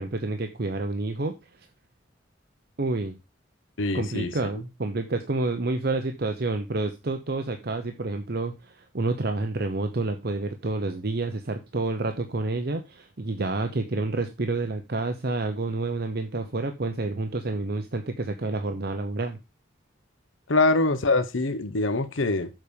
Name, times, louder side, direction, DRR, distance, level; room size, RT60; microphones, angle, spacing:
voice 1, 0.0-1.7 2.8-3.2 3.9-19.4, right 2 dB, 55° right, 6 dB, 0.8 m, -29 dB
voice 2, 3.8-4.3 20.5-22.5, left 2 dB, 85° left, 11 dB, 0.9 m, -24 dB
7.6 x 4.9 x 6.8 m, 0.26 s
head